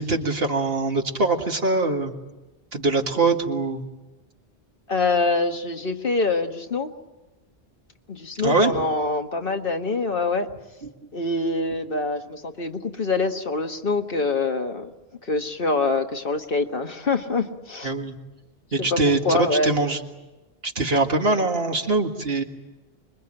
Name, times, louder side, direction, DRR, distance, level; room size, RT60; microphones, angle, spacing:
voice 1, 0.0-2.1 2.7-3.8 8.4-8.7 17.8-18.2 18.7-20.0 20.6-22.4, right 3 dB, 65° right, 3 dB, 2.2 m, -23 dB
voice 2, 4.9-6.9 8.1-10.5 11.1-14.9 15.2-17.9 18.8-19.8, left 3 dB, 60° left, 5 dB, 1.7 m, -25 dB
26.0 x 22.5 x 8.9 m, 1.1 s
omnidirectional pair, 1.1 m